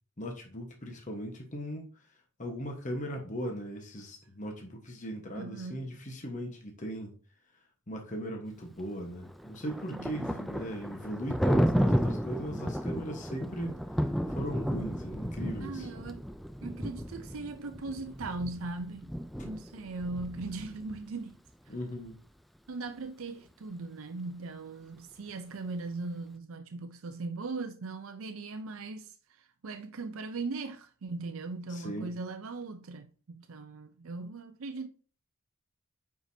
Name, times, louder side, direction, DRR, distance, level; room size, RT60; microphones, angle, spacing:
voice 1, 0.2-1.9 2.4-7.1 7.9-13.8 14.3-15.9 21.7-22.2 31.7-32.1, equal, 35° left, 1.2 m, -38 dB
voice 2, 5.3-5.8 9.9-10.4 15.6-16.3 16.6-19.1 19.4-21.4 22.7-34.9, right 3 dB, 70° right, 0.5 m, -39 dB
Thunder, 9.2-21.0, equal, ahead, 0.3 m, -33 dB
8.9 x 4.7 x 2.7 m
head